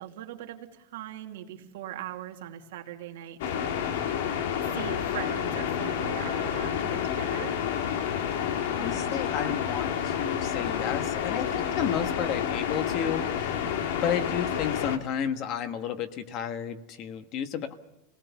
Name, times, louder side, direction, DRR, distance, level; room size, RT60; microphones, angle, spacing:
voice 1, 0.0-3.8 4.7-7.6, right 12 dB, 80° right, 3 dB, 2.4 m, -40 dB
sound 1, 3.4-15.0, left 8 dB, 75° left, 1.9 m, -29 dB
voice 2, 8.8-13.6 13.9-17.7, left 8 dB, 40° left, 10 dB, 1.3 m, -32 dB
26.0 x 18.0 x 7.1 m, 0.96 s
supercardioid pair, 155°, 0 cm